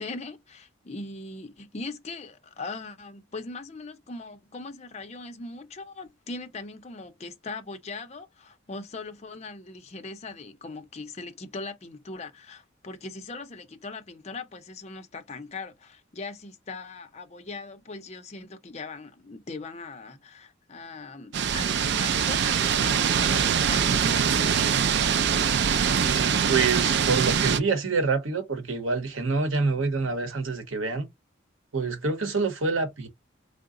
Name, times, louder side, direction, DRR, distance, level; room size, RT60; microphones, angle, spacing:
voice 1, 0.0-24.8, left 3 dB, 35° left, 0.5 m, -40 dB
sound 1, 21.3-27.6, right 7 dB, 60° right, 0.4 m, -23 dB
voice 2, 26.0-31.1 31.7-33.1, right 4 dB, 85° right, 0.9 m, -27 dB
3.7 x 2.0 x 3.6 m
head